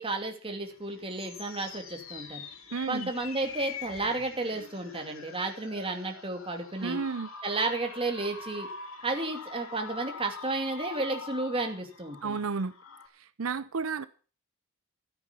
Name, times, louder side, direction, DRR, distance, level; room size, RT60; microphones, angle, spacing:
voice 1, 0.0-2.4 2.9-7.0 7.4-8.7 9.0-12.4, right 2 dB, 25° right, 2.6 m, -32 dB
sound 1, 0.7-13.1, left 5 dB, 80° left, 2.4 m, -44 dB
voice 2, 2.7-3.1 6.8-7.3 12.2-12.7 13.2-14.1, right 5 dB, 90° right, 0.6 m, -32 dB
13.5 x 9.5 x 6.9 m
head